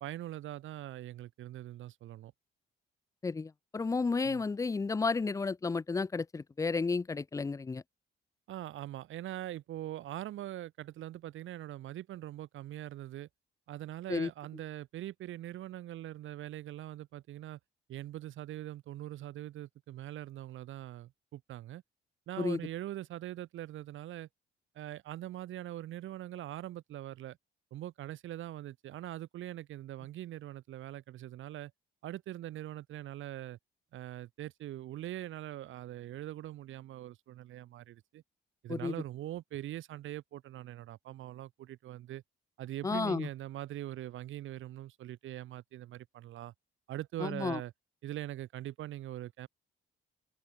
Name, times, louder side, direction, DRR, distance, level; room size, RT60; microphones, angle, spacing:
voice 1, 0.0-2.3 4.2-4.4 8.5-13.3 13.7-17.6 17.9-21.8 22.3-24.3 24.8-27.4 27.7-31.7 32.0-33.6 33.9-38.2 38.6-42.2 42.6-46.5 46.9-47.7 48.0-49.5, right 13 dB, 80° right, 1.9 m, -42 dB
voice 2, 3.2-7.8 14.1-14.3 22.4-22.6 38.7-38.9 42.8-43.3 47.2-47.6, left 4 dB, 15° left, 0.4 m, -32 dB
open air
cardioid pair, 90°, 20 cm